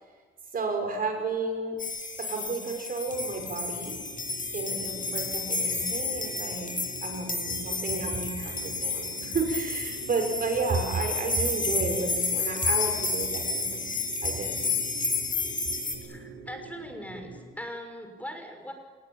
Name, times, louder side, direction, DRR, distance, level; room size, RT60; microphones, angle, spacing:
voice 1, 0.5-1.8 2.2-4.0 4.5-6.7 7.0-13.8 14.2-14.6, right 3 dB, 45° right, 4 dB, 6.6 m, -32 dB
sound 1, 1.8-15.9, left 4 dB, 45° left, 6.8 m, -31 dB
sound 2, 3.1-17.4, right 3 dB, 65° right, 6.6 m, -46 dB
voice 2, 16.0-18.7, equal, 5° left, 5 dB, 5.9 m, -40 dB
28.0 x 20.5 x 9.1 m, 1.5 s
cardioid pair, 90°, 20 cm